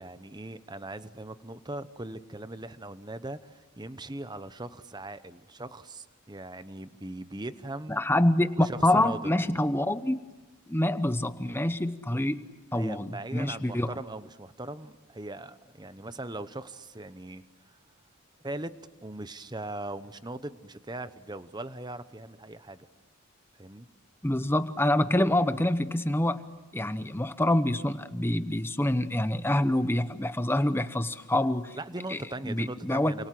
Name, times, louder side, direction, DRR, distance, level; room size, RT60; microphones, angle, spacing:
voice 1, 0.0-8.0 8.6-9.3 12.7-17.4 18.4-18.7 19.0-22.9 23.6-23.9 31.7-33.3, right 2 dB, 20° right, 13 dB, 0.9 m, -39 dB
voice 2, 7.9-10.2 10.7-12.4 12.7-13.9 24.2-26.4 26.7-31.8 32.1-32.2 32.4-33.1, left 1 dB, 10° left, 11 dB, 0.9 m, -26 dB
29.0 x 27.0 x 7.7 m, 1.2 s
head